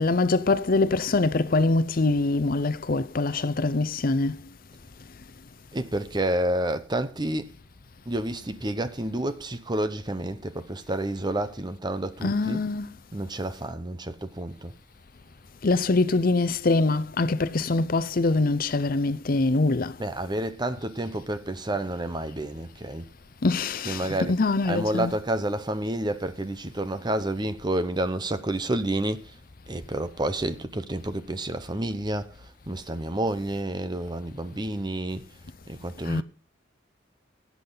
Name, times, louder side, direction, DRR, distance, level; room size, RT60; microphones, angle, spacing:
voice 1, 0.0-4.4 12.2-12.9 15.6-19.9 23.4-25.1 36.1-36.2, left 3 dB, 45° left, 0.6 m, -24 dB
voice 2, 5.7-7.5 8.1-12.6 13.1-14.7 20.0-23.1 23.8-29.3 29.7-32.4 32.7-35.2 35.7-36.2, right 1 dB, 20° right, 0.8 m, -29 dB
16.5 x 8.5 x 4.0 m
head